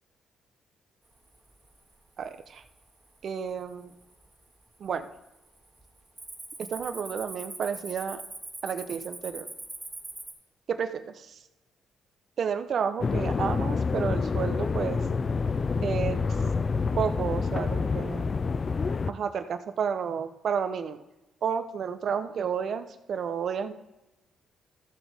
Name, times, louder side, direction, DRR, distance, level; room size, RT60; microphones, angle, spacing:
Cricket, 1.3-1.8 2.2-2.7 3.3-3.4 4.0-4.6 4.8-5.1 5.5-10.3, right 2 dB, 20° right, 1.8 m, -42 dB
voice 1, 2.2-2.6 3.2-3.9 4.8-5.1 6.6-8.2 8.6-9.5 10.7-11.0 12.4-15.0 15.8-16.2 17.0-18.3 19.1-21.0 21.4-23.7, right 7 dB, 60° right, 9 dB, 0.9 m, -31 dB
sound 1, 13.0-19.1, left 4 dB, 35° left, 0.4 m, -27 dB
14.5 x 7.2 x 3.6 m, 0.96 s
cardioid pair, 90°, 0 cm